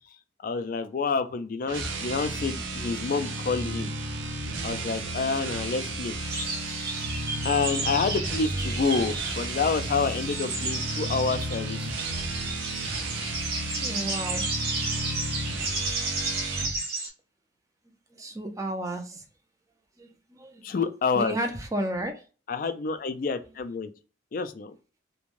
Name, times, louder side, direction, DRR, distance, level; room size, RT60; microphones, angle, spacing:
voice 1, 0.4-3.9 4.6-6.2 7.4-11.9 20.6-21.4 22.5-23.9 24.3-24.8, left 4 dB, 45° left, 0.3 m, -28 dB
sound 1, 1.6-16.8, right 2 dB, 90° right, 0.6 m, -33 dB
sound 2, 6.3-17.1, right 3 dB, 55° right, 1.2 m, -33 dB
voice 2, 13.8-14.5 15.0-15.1 18.1-19.2 20.0-20.8 21.1-22.2, right 1 dB, 15° right, 0.4 m, -33 dB
3.1 x 2.2 x 2.5 m
head